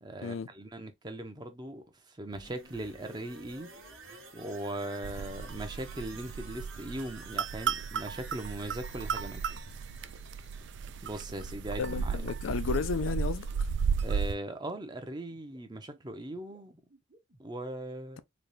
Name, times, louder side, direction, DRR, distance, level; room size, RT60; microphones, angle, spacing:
voice 1, 0.0-3.7 4.3-9.5 11.0-12.2 14.0-16.7 17.4-18.2, right 1 dB, 20° right, 0.6 m, -39 dB
sound 1, 2.3-12.0 12.3-12.4, right 4 dB, 80° right, 1.2 m, -51 dB
sound 2, 5.0-14.3, right 6 dB, 55° right, 0.3 m, -34 dB
voice 2, 11.8-13.5, left 5 dB, 75° left, 0.4 m, -33 dB
sound 3, 13.5-17.4, right 1 dB, 35° right, 1.1 m, -61 dB
4.0 x 2.3 x 3.2 m
head